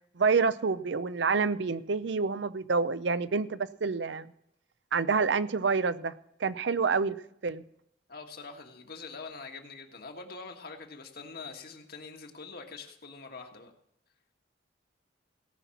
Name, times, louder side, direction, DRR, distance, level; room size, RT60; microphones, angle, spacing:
voice 1, 0.2-4.3 4.9-6.1 6.4-7.2 7.4-7.6, right 4 dB, 70° right, 15 dB, 0.6 m, -27 dB
voice 2, 8.1-13.7, left 4 dB, 55° left, 4 dB, 1.6 m, -44 dB
17.5 x 5.9 x 7.1 m, 0.74 s
head